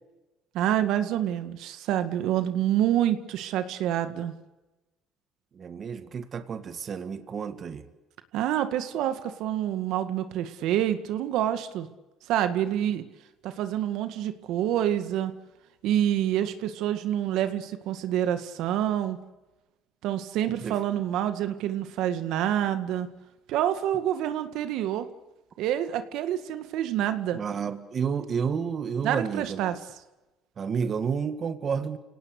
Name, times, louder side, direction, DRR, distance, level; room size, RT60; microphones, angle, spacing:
voice 1, 0.5-4.3 8.3-11.9 12.3-13.0 13.4-15.3 15.8-19.2 20.0-23.1 23.5-25.1 25.6-27.4 29.0-29.8, right 11 dB, 70° right, 10 dB, 2.0 m, -27 dB
voice 2, 5.5-7.9 20.6-20.8 27.3-29.8 30.6-32.0, right 6 dB, 35° right, 10 dB, 1.7 m, -30 dB
30.0 x 18.0 x 8.3 m, 1.1 s
cardioid pair, 125°, 0 cm